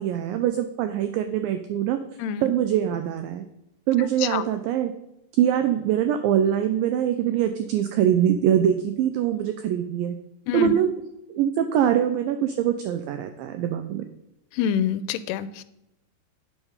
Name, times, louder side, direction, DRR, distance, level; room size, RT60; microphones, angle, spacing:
voice 1, 0.0-2.0 2.4-3.5 3.9-4.9 5.4-10.2 10.5-10.9 11.3-14.1, right 10 dB, 90° right, 8 dB, 2.0 m, -23 dB
voice 2, 2.2-2.5 4.2-4.4 10.5-10.7 14.5-15.6, left 8 dB, 85° left, 14 dB, 2.6 m, -26 dB
8.7 x 5.1 x 5.4 m, 0.87 s
omnidirectional pair, 4.6 m